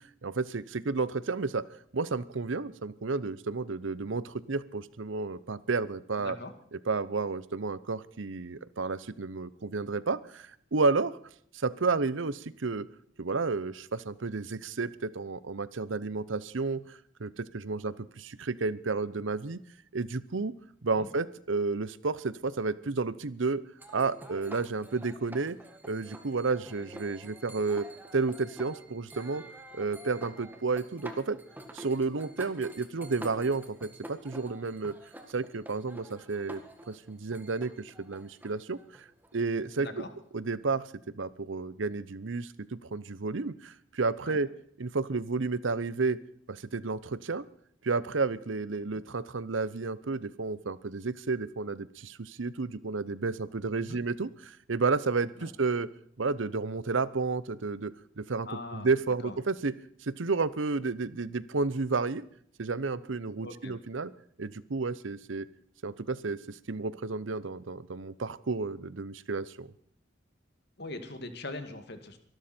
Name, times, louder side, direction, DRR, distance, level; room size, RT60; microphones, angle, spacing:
voice 1, 0.2-1.6 1.9-6.4 6.7-11.2 11.5-12.9 13.2-19.6 19.9-20.5 20.8-23.6 23.9-25.6 25.8-29.4 29.7-31.4 31.7-35.0 35.3-39.1 39.3-40.0 40.3-44.5 44.8-46.2 46.5-47.4 47.8-55.9 56.2-59.7 60.0-62.2 62.6-64.1 64.4-65.5 65.8-69.7, right 4 dB, 75° right, 18 dB, 0.8 m, -31 dB
voice 2, 6.2-6.5 21.0-21.1 39.8-40.1 44.2-44.4 53.8-54.0 55.4-55.5 58.5-58.9 59.2-59.4 63.4-63.8 70.8-72.2, left 2 dB, 55° left, 8 dB, 2.2 m, -41 dB
sound 1, 23.8-40.1, right 1 dB, 10° right, 1.7 m, -48 dB
24.0 x 13.0 x 4.4 m, 0.65 s
head